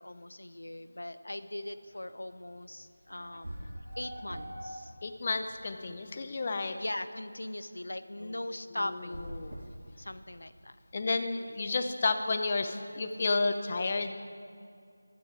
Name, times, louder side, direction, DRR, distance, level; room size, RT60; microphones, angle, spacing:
voice 1, 0.0-3.6 4.0-4.9 6.8-9.3 10.0-10.8, left 1 dB, 80° left, 12 dB, 0.8 m, -40 dB
sound 1, 2.5-2.6 3.1-5.4, right 1 dB, 35° right, 4.2 m, -46 dB
sound 2, 3.0-3.1 3.4-4.8 5.1-6.2 8.9-10.5, right 1 dB, 80° right, 2.5 m, -44 dB
voice 2, 5.0-6.8 8.2-8.3 8.8-9.6 10.9-14.1, left 3 dB, 35° left, 7 dB, 0.9 m, -31 dB
16.5 x 12.0 x 4.8 m, 2.4 s
figure-of-eight pair, 170°, 0 cm